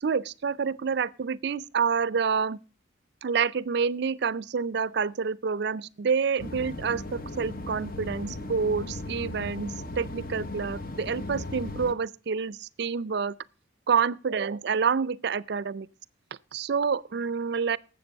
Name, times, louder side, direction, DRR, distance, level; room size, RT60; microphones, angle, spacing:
voice 1, 0.0-2.6 3.2-13.4 13.9-15.9 16.5-17.8, right 6 dB, 55° right, 0.4 m, -28 dB
sound 1, 6.4-11.9, left 2 dB, 45° left, 0.9 m, -37 dB
12.5 x 7.7 x 5.2 m
head